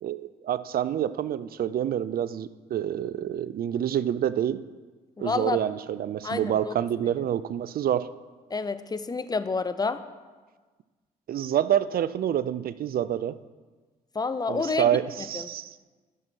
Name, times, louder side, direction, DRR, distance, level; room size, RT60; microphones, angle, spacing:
voice 1, 0.0-4.6 5.2-8.1 11.3-13.4 14.5-15.7, right 10 dB, 55° right, 16 dB, 0.5 m, -27 dB
voice 2, 5.2-5.6 6.2-6.7 8.5-10.0 14.1-14.9 15.3-15.5, left 4 dB, 20° left, 11 dB, 0.7 m, -29 dB
11.5 x 6.1 x 4.6 m, 1.3 s
hypercardioid pair, 50°, 18 cm